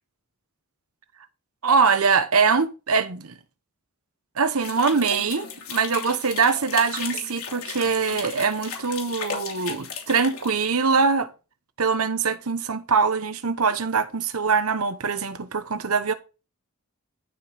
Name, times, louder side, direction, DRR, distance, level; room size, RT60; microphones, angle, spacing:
voice 1, 1.6-3.3 4.4-11.3 11.8-16.1, right 5 dB, 70° right, 1.0 m, -23 dB
sound 1, 4.6-10.9, left 6 dB, 70° left, 3.0 m, -35 dB
12.0 x 5.4 x 4.0 m
head